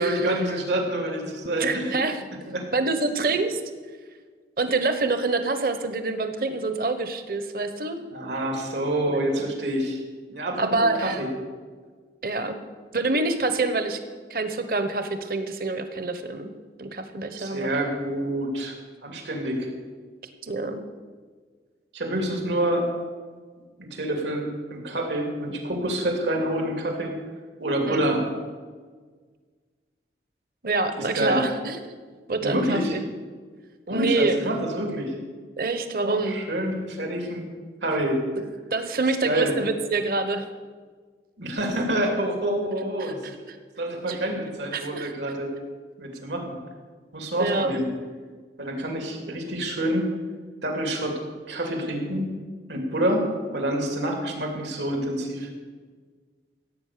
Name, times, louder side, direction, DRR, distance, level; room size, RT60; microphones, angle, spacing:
voice 1, 0.0-2.0 2.5-2.7 3.0-3.1 8.1-10.0 10.3-11.3 17.4-18.8 19.0-19.7 21.9-22.9 23.8-27.1 27.6-28.3 30.9-31.4 32.4-32.9 33.9-35.2 36.0-37.5 37.8-38.2 39.2-39.5 41.4-43.1 43.8-45.5 46.0-46.6 47.1-47.8 48.6-50.1 50.6-51.2 51.5-52.3 52.7-55.5, right 1 dB, 85° right, 2 dB, 2.9 m, -27 dB
voice 2, 1.6-2.2 2.7-3.6 4.6-8.0 9.1-9.5 10.6-11.2 12.2-12.6 12.9-14.0 14.3-16.5 16.8-17.7 20.4-20.8 27.9-28.0 30.6-32.0 32.3-33.0 33.9-34.5 35.6-36.4 38.7-40.5 43.0-43.6 44.1-44.2 44.7-45.1 47.4-47.9, right 3 dB, 55° right, 9 dB, 1.1 m, -26 dB
16.0 x 8.5 x 6.8 m, 1.5 s
head